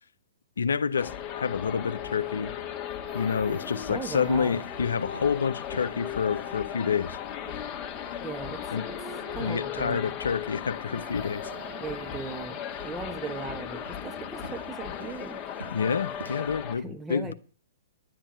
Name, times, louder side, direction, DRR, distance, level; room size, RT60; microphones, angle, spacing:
voice 1, 0.6-2.5 3.1-7.2 8.7-8.9 9.4-11.5 15.7-17.3, left 6 dB, 75° left, 0.6 m, -28 dB
sound 1, 1.0-16.8, left 9 dB, 30° left, 1.4 m, -37 dB
Chicken rooster, 2.8-4.6 10.7-12.5 14.8-14.9 15.1-15.4, right 5 dB, 55° right, 2.3 m, -49 dB
voice 2, 3.9-4.5 8.2-8.6 8.9-9.0 9.3-10.1 11.8-15.5 16.7-17.3, right 4 dB, 10° right, 1.5 m, -38 dB
sound 2, 4.1-16.6, right 3 dB, 85° right, 1.2 m, -50 dB
11.0 x 9.0 x 8.8 m
hypercardioid pair, 120°, 0 cm